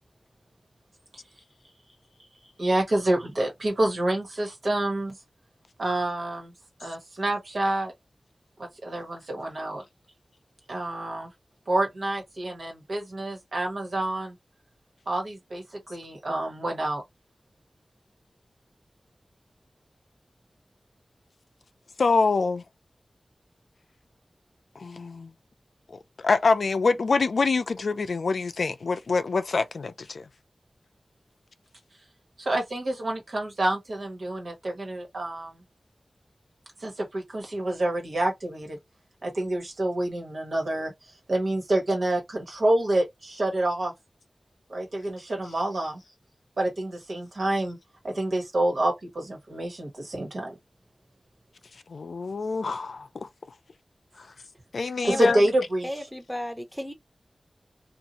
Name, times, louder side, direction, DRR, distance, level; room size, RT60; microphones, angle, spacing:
voice 1, 2.6-5.1 5.8-6.5 6.8-7.9 8.6-9.8 10.7-11.3 11.7-14.3 15.1-17.0 32.4-35.6 36.8-38.8 39.2-40.9 41.3-43.9 44.7-46.0 46.6-47.8 48.0-50.5 55.1-55.9, right 1 dB, 70° right, 1.3 m, -27 dB
voice 2, 22.0-22.6 24.8-25.3 25.9-30.3 51.9-53.3 54.2-54.3 54.7-55.4, left 4 dB, 90° left, 0.4 m, -25 dB
voice 3, 55.0-55.5 55.8-56.9, equal, ahead, 0.8 m, -34 dB
2.7 x 2.5 x 2.9 m
wide cardioid pair, 85°, 0 cm